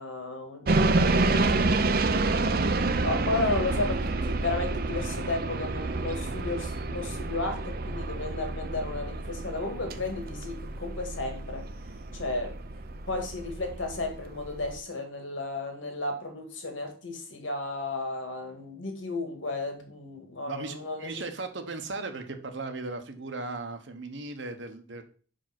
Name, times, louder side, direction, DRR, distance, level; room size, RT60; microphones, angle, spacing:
voice 1, 0.0-1.6 3.0-11.7 12.1-12.6 13.1-21.2, left 2 dB, 85° left, 4 dB, 2.0 m, -33 dB
sound 1, 0.7-14.8, right 3 dB, 50° right, 0.6 m, -29 dB
voice 2, 20.5-25.0, right 3 dB, 70° right, 7 dB, 1.1 m, -37 dB
5.7 x 5.1 x 5.9 m, 0.41 s
head